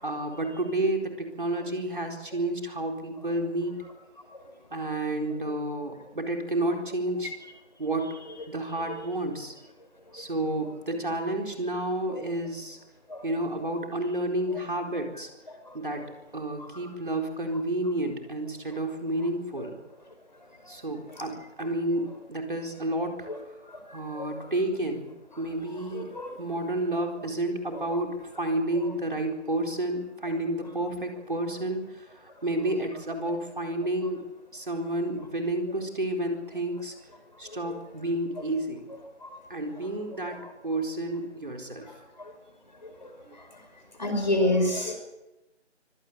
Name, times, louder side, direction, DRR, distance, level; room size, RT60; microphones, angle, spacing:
voice 1, 0.0-3.7 4.7-7.3 7.8-8.2 8.5-9.5 10.1-12.8 13.2-15.3 15.7-16.0 16.3-19.8 20.7-23.3 23.9-25.1 25.4-26.1 26.4-34.2 34.5-36.9 37.4-38.8 39.5-40.4 40.6-42.0, right 1 dB, 45° right, 2 dB, 4.3 m, -30 dB
voice 2, 25.9-26.3 39.2-39.3 44.0-45.0, left 1 dB, 35° left, 5 dB, 5.4 m, -27 dB
24.5 x 17.0 x 8.6 m, 0.97 s
figure-of-eight pair, 180°, 37 cm